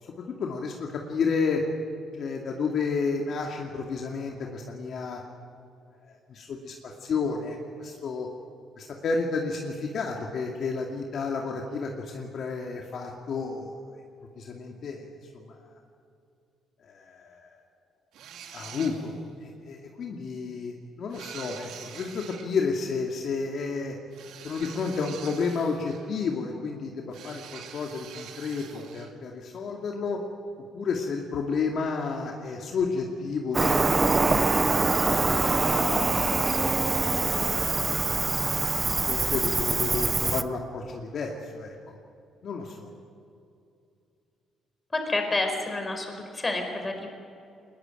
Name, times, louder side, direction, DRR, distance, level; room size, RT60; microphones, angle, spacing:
voice 1, 0.4-1.6 2.2-5.2 6.1-8.3 8.8-13.8 14.4-15.1 15.3-15.7 16.8-17.5 18.5-19.1 19.4-24.0 24.4-30.2 30.7-34.4 35.0-36.5 37.2-37.7 39.1-41.7 42.4-42.9, left 4 dB, 60° left, 1 dB, 2.4 m, -31 dB
sound 1, 18.1-19.3 21.1-22.5 24.1-26.2 27.1-29.1, right 8 dB, 80° right, 2.4 m, -45 dB
Cricket, 33.5-40.4, right 3 dB, 25° right, 0.9 m, -24 dB
voice 2, 44.9-47.1, left 2 dB, 20° left, 4 dB, 4.8 m, -29 dB
22.0 x 20.5 x 9.1 m, 2.5 s
cardioid pair, 105°, 0 cm